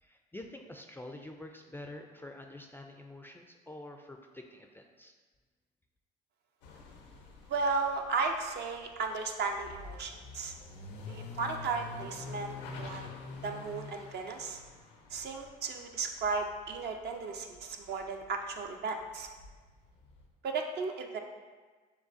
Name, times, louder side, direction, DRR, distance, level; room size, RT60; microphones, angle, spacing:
voice 1, 0.0-5.1, left 1 dB, 10° left, 3 dB, 0.3 m, -47 dB
sound 1, 6.6-17.6 17.9-20.3, left 4 dB, 90° left, 0.6 m, -47 dB
voice 2, 7.5-10.5 11.1-13.1 13.4-14.6 15.1-19.3 20.4-21.2, right 4 dB, 50° right, 4 dB, 0.5 m, -35 dB
6.6 x 2.3 x 2.5 m, 1.4 s
hypercardioid pair, 65°, 21 cm